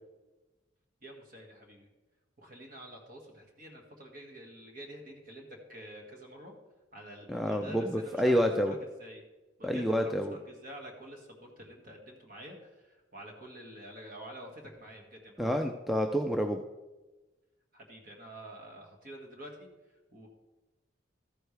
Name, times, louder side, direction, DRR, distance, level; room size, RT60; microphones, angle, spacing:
voice 1, 1.0-1.9 2.4-6.5 6.9-8.4 8.6-9.3 9.6-15.5 17.7-20.3, right 1 dB, 45° right, 1 dB, 1.9 m, -48 dB
voice 2, 7.3-8.8 9.6-10.3 15.4-16.6, equal, ahead, 4 dB, 0.4 m, -28 dB
13.5 x 9.1 x 3.3 m, 1.1 s
head